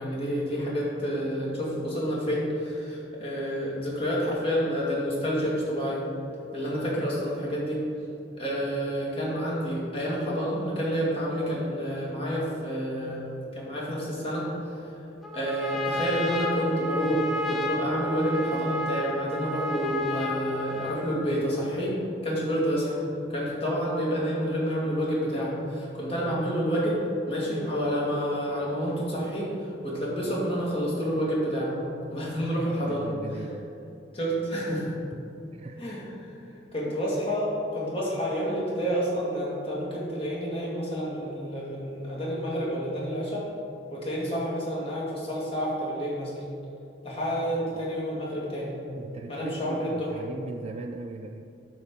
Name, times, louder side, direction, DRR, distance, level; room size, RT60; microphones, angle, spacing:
voice 1, 0.0-6.0 6.5-7.8 8.4-13.2 13.5-14.9 15.3-23.0 23.3-31.7 32.1-33.1 33.3-33.4 34.1-34.9 35.8-36.3 36.7-43.5 43.9-46.3 47.0-48.7 49.3-50.1, equal, 35° left, -5 dB, 2.2 m, -29 dB
Trumpet, 15.2-21.2, left 2 dB, ahead, 0.9 m, -32 dB
voice 2, 32.9-33.7 35.5-35.8 47.7-47.9 48.9-51.4, right 3 dB, 35° right, 5 dB, 0.3 m, -39 dB
10.5 x 3.8 x 7.2 m, 2.7 s
head